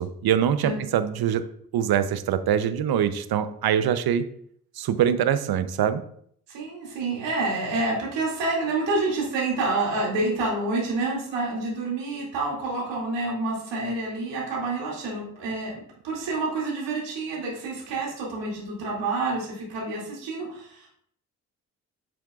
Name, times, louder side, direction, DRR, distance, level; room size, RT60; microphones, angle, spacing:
voice 1, 0.0-1.4 1.7-4.2 4.8-6.0, right 9 dB, 55° right, 12 dB, 0.8 m, -23 dB
voice 2, 6.5-21.0, right 3 dB, 70° right, -4 dB, 2.6 m, -28 dB
7.7 x 7.1 x 2.4 m, 0.65 s
hypercardioid pair, 45°, 44 cm